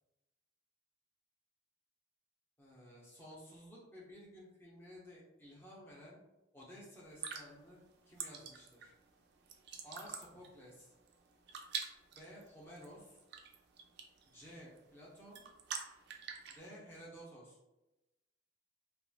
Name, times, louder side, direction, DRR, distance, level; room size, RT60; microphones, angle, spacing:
voice 1, 2.6-6.2 6.5-7.8 8.0-8.9 9.8-10.9 12.1-13.2 14.2-15.4 16.5-17.6, equal, 10° left, -6 dB, 0.6 m, -54 dB
sound 1, 7.0-16.6, right 6 dB, 55° right, 0.3 m, -47 dB
2.9 x 2.2 x 2.4 m, 0.97 s
head